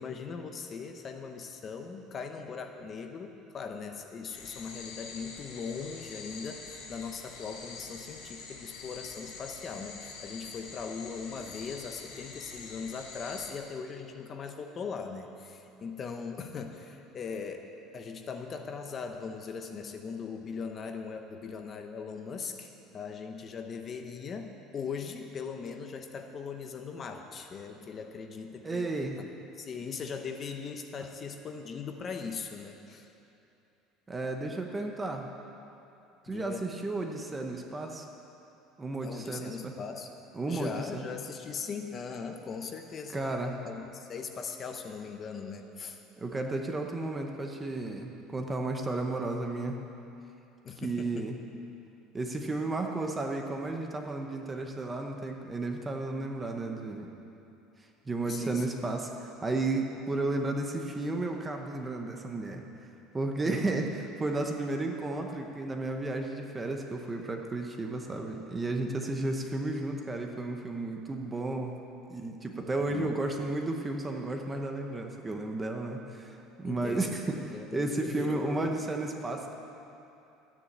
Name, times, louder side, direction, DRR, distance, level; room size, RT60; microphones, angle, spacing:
voice 1, 0.0-17.7 17.9-28.9 29.2-29.3 29.6-33.1 36.3-36.7 39.0-40.1 40.5-43.2 43.6-46.0 50.6-51.3 58.2-59.0 63.4-63.5 72.7-73.1 76.6-78.7, left 5 dB, 25° left, 5 dB, 0.8 m, -40 dB
sound 1, 4.3-13.5, left 4 dB, 70° left, 3.2 m, -46 dB
voice 2, 28.6-29.2 34.1-35.3 36.2-38.1 38.8-39.7 40.3-41.0 43.1-43.6 46.2-49.8 50.8-51.4 52.1-57.1 58.1-62.6 63.1-71.7 72.1-79.6, right 2 dB, 10° right, 3 dB, 0.8 m, -33 dB
13.0 x 9.7 x 8.6 m, 2.8 s
cardioid pair, 175°, 0 cm